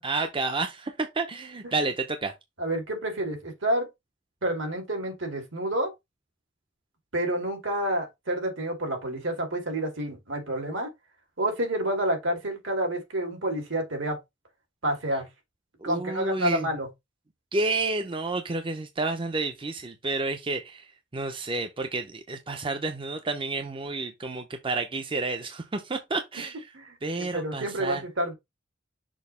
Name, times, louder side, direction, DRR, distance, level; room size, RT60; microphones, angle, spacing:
voice 1, 0.0-2.3 15.8-16.7 17.5-20.9 21.1-26.6 27.0-28.0, right 3 dB, 25° right, 0.6 m, -30 dB
voice 2, 2.6-3.9 4.4-5.9 7.1-10.9 11.4-14.2 14.8-15.3 15.8-16.9 26.7-28.3, right 1 dB, 70° right, 2.2 m, -29 dB
6.3 x 2.7 x 5.5 m
head